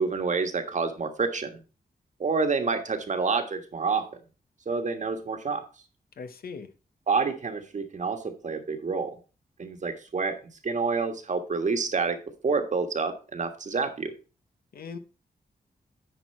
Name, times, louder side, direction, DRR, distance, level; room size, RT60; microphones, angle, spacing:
voice 1, 0.0-1.6 2.2-4.1 4.6-5.6 7.1-9.2 9.6-10.4 10.6-12.2 12.4-14.1, right 4 dB, 50° right, 6 dB, 1.5 m, -28 dB
voice 2, 6.2-6.7 14.7-15.0, left 5 dB, 75° left, 10 dB, 1.0 m, -39 dB
9.9 x 4.7 x 4.4 m, 0.33 s
wide cardioid pair, 100°, 16 cm